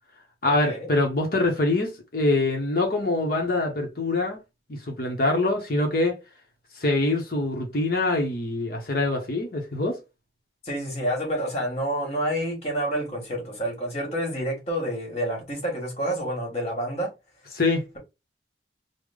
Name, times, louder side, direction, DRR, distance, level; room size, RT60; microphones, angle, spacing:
voice 1, 0.4-4.4 4.7-6.2 6.8-10.0 17.5-17.9, left 2 dB, 55° left, 0.9 m, -24 dB
voice 2, 10.6-17.1, equal, 35° left, 1.6 m, -28 dB
3.4 x 2.1 x 3.4 m
head